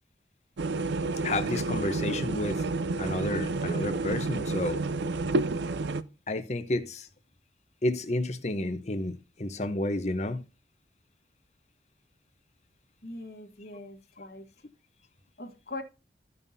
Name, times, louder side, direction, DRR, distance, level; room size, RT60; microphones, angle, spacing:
sound 1, 0.6-6.0, right 3 dB, 85° right, 0.5 m, -30 dB
voice 1, 1.2-2.6 3.0-4.8 6.3-7.1 7.8-10.4, left 1 dB, 40° left, 0.9 m, -31 dB
voice 2, 13.0-14.5 15.4-15.8, left 2 dB, 55° left, 1.5 m, -41 dB
14.5 x 5.4 x 2.7 m
head